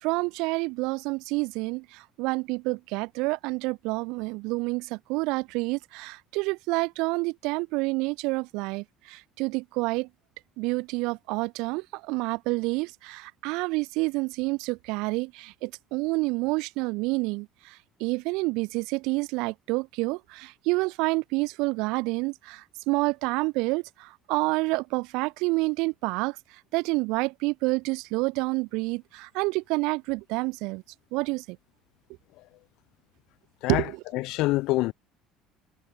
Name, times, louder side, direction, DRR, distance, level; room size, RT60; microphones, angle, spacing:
voice 1, 0.0-1.8 2.2-10.1 10.6-17.5 18.0-26.3 26.7-30.8 31.1-31.4 33.7-34.0, right 25 dB, 75° right, 7.6 m, -28 dB
voice 2, 34.1-34.9, left 20 dB, 70° left, 3.3 m, -25 dB
supercardioid pair, 105°, 0 cm